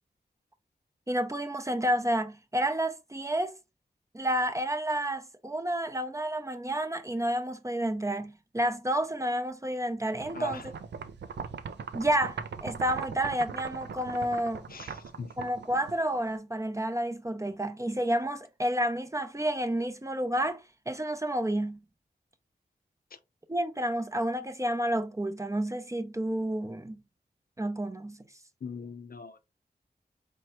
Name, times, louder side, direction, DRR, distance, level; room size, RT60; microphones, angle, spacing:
voice 1, 1.1-3.5 4.1-10.6 11.9-14.7 15.4-21.8 23.5-27.0 27.6-28.2, right 1 dB, 15° right, 0.5 m, -30 dB
sound 1, 10.2-16.3, right 6 dB, 90° right, 0.5 m, -40 dB
voice 2, 10.3-10.7 14.7-15.5 28.6-29.4, left 4 dB, 60° left, 0.6 m, -41 dB
4.4 x 3.2 x 2.9 m
wide cardioid pair, 65°, 18 cm